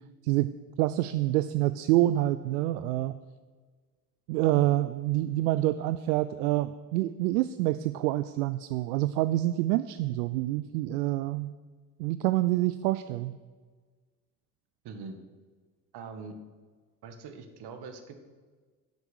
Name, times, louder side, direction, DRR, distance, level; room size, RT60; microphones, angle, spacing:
voice 1, 0.8-3.1 4.3-11.5 12.0-13.4, right 15 dB, 80° right, 13 dB, 0.5 m, -27 dB
voice 2, 14.8-15.2 15.9-16.4 17.0-18.2, right 4 dB, 55° right, 7 dB, 1.7 m, -42 dB
10.5 x 8.1 x 6.3 m, 1.4 s
hypercardioid pair, 60°, 46 cm